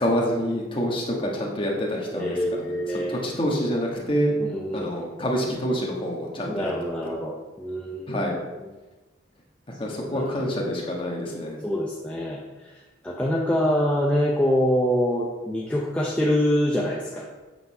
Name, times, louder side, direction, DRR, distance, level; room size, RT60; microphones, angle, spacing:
voice 1, 0.0-4.4 4.7-6.7 8.1-8.4 9.8-11.6, equal, 25° left, -1 dB, 1.3 m, -27 dB
voice 2, 2.1-3.2 4.4-5.0 6.5-8.3 10.0-10.4 11.6-17.2, equal, 5° left, -3 dB, 0.6 m, -25 dB
8.2 x 4.0 x 5.3 m, 1.2 s
head